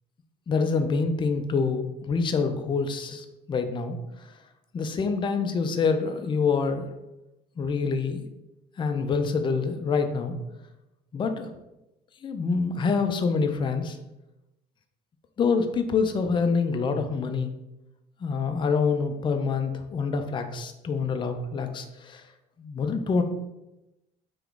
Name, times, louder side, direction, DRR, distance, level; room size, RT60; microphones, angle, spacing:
voice 1, 0.5-4.3 4.7-6.9 7.6-8.2 8.8-10.4 11.1-11.5 12.2-14.0 15.4-17.5 18.2-22.3 22.6-23.2, left 5 dB, 30° left, 6 dB, 0.4 m, -26 dB
3.6 x 3.0 x 3.4 m, 0.95 s
cardioid pair, 110°, 17 cm